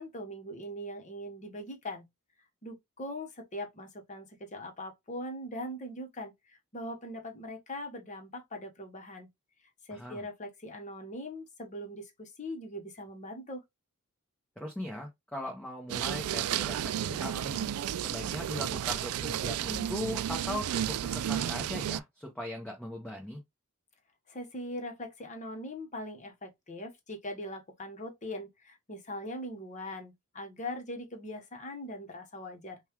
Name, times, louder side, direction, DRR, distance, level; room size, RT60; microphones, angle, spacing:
voice 1, 0.0-2.1 2.6-9.3 9.8-13.6 24.3-32.8, left 1 dB, 35° left, 1.0 m, -41 dB
voice 2, 9.9-10.2 14.6-17.7 18.0-23.4, left 1 dB, 5° left, 0.9 m, -39 dB
sound 1, 15.9-22.0, right 10 dB, 85° right, 0.3 m, -32 dB
5.4 x 2.3 x 2.9 m
head